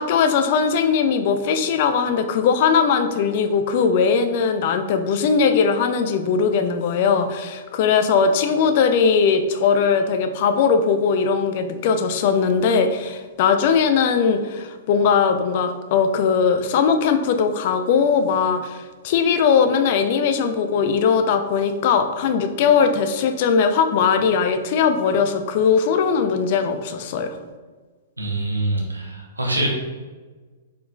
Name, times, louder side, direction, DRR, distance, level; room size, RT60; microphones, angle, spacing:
voice 1, 0.0-27.4, left 6 dB, 50° left, 8 dB, 0.4 m, -19 dB
voice 2, 28.2-29.7, right 1 dB, 90° right, 0 dB, 0.9 m, -24 dB
4.4 x 3.8 x 2.3 m, 1.4 s
figure-of-eight pair, 110°, 0 cm